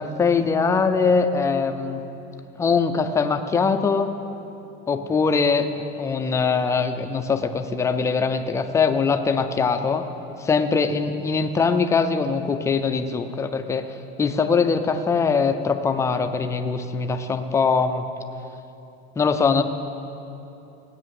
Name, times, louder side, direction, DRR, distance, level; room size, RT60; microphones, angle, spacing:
voice 1, 0.0-2.0 2.6-4.1 4.9-5.7 6.0-10.0 10.4-13.8 14.2-18.0 19.2-19.6, left 5 dB, 10° left, 7 dB, 0.4 m, -22 dB
16.5 x 9.8 x 7.6 m, 2.9 s
cardioid pair, 170°, 31 cm